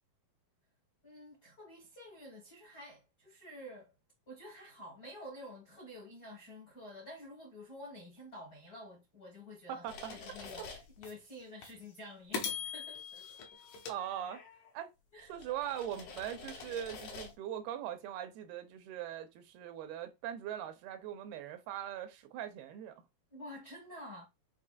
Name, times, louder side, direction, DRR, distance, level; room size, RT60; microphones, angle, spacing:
voice 1, 1.0-3.9 4.3-9.9 10.1-13.3 15.1-15.3 23.3-24.2, left 1 dB, 60° left, 0.9 m, -50 dB
voice 2, 9.7-10.2 13.9-14.4 14.7-14.9 15.3-23.0, right 10 dB, 90° right, 2.6 m, -41 dB
sound 1, 9.9-11.1 11.6-11.8 12.3-14.7 15.2-17.3, left 6 dB, 80° left, 1.6 m, -43 dB
6.5 x 2.8 x 2.5 m
omnidirectional pair, 4.4 m